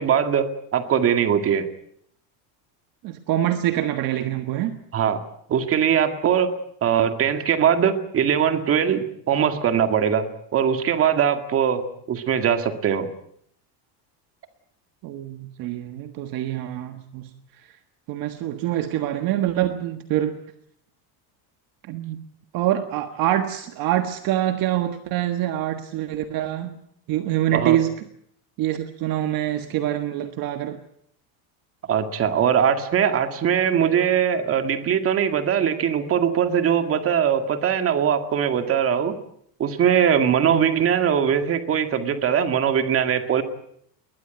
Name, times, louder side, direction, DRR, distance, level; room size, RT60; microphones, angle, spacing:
voice 1, 0.0-1.7 4.9-5.2 5.5-10.3 10.5-13.1 27.5-27.8 31.9-39.1 39.6-43.4, right 8 dB, 30° right, 8 dB, 2.0 m, -21 dB
voice 2, 3.0-4.8 15.0-17.3 18.1-20.4 21.9-22.2 22.5-26.7 27.1-27.9 28.6-30.8 40.4-40.8, right 12 dB, 45° right, 8 dB, 1.5 m, -25 dB
21.5 x 19.5 x 9.2 m, 0.70 s
cardioid pair, 170°, 47 cm